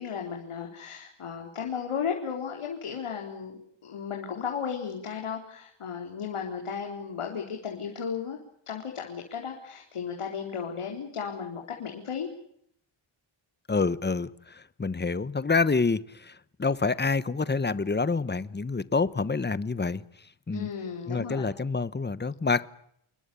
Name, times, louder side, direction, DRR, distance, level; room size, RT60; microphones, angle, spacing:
voice 1, 0.0-8.4 8.7-12.3 20.5-21.5, left 7 dB, 80° left, 1 dB, 4.2 m, -35 dB
voice 2, 13.7-20.0 20.5-20.7 21.1-22.7, left 4 dB, 20° left, 15 dB, 1.1 m, -27 dB
28.5 x 21.5 x 7.0 m, 0.72 s
wide cardioid pair, 110°, 50 cm